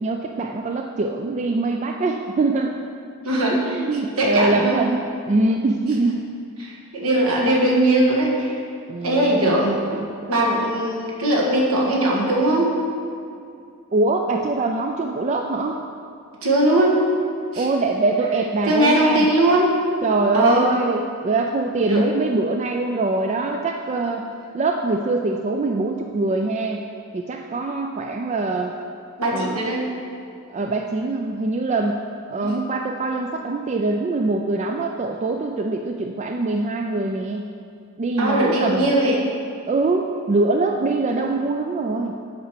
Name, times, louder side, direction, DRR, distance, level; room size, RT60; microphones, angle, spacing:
voice 1, 0.0-2.8 3.5-6.3 8.9-9.5 9.9-10.1 13.9-15.8 17.6-19.3 20.0-24.3 24.5-26.8 27.1-28.7 29.3-29.6 30.5-32.0 32.3-37.5 38.0-38.9 39.7-42.1, right 3 dB, 30° right, 3 dB, 0.3 m, -23 dB
voice 2, 3.2-4.8 6.6-8.5 9.0-10.0 10.3-12.7 16.4-17.0 17.5-17.7 18.7-19.8 20.3-20.7 21.8-22.0 29.2-29.8 32.4-32.5 38.2-39.2 41.1-41.2, right 1 dB, 70° right, -3 dB, 1.7 m, -20 dB
8.0 x 4.8 x 6.6 m, 2.4 s
head